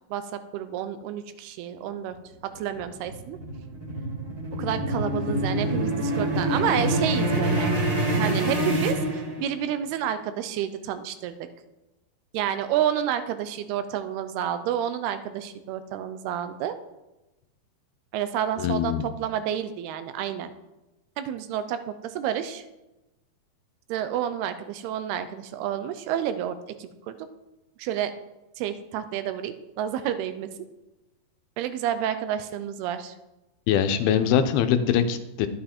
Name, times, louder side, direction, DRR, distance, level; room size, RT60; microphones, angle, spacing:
voice 1, 0.1-2.2 2.5-3.4 4.5-7.8 8.1-11.5 12.3-16.8 18.1-20.5 21.2-22.6 23.9-27.2 27.8-28.1 28.6-30.5 31.6-33.1, right 10 dB, 85° right, 11 dB, 2.7 m, -30 dB
sound 1, 2.5-9.7, right 1 dB, 35° right, 2.9 m, -26 dB
voice 2, 18.6-19.1 33.7-35.5, left 8 dB, 80° left, 8 dB, 2.6 m, -22 dB
12.0 x 8.7 x 4.3 m, 1.0 s
omnidirectional pair, 4.6 m